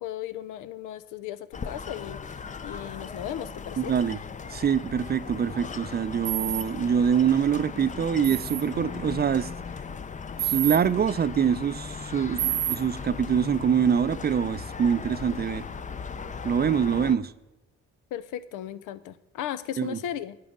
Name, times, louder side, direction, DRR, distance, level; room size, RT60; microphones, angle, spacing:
voice 1, 0.0-3.9 18.1-20.4, left 11 dB, 90° left, 0.6 m, -36 dB
sound 1, 1.5-17.2, left 5 dB, 25° left, 0.5 m, -38 dB
voice 2, 3.8-4.2 4.5-9.5 10.4-15.6 16.4-17.3 19.8-20.0, right 7 dB, 35° right, 0.5 m, -25 dB
sound 2, 6.2-6.6 8.2-8.6 10.4-10.8 12.4-12.8, right 14 dB, 85° right, 0.8 m, -28 dB
11.0 x 8.2 x 3.7 m
cardioid pair, 90°, 30 cm